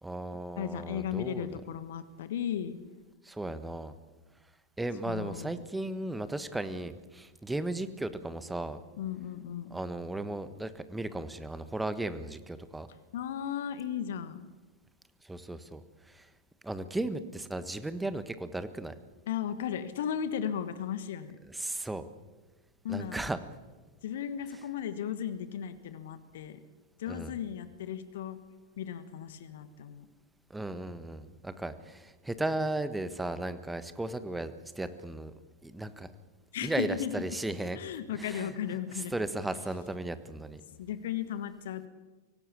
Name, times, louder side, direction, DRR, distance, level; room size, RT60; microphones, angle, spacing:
voice 1, 0.0-1.6 3.2-3.9 4.8-8.8 9.7-12.9 15.2-16.3 16.6-18.9 21.5-22.1 22.9-23.4 27.1-27.3 30.5-35.3 35.6-36.1 36.6-37.8 38.1-38.5 38.9-40.6, right 2 dB, 5° right, 12 dB, 1.5 m, -36 dB
voice 2, 0.6-2.8 5.0-5.7 9.0-9.7 13.1-14.4 19.3-21.4 22.8-23.2 24.0-26.6 27.0-28.4 28.8-30.1 36.5-37.2 37.7-39.1 40.7-41.9, left 9 dB, 60° left, 11 dB, 1.5 m, -35 dB
24.5 x 17.5 x 8.4 m, 1.2 s
figure-of-eight pair, 90°, 0 cm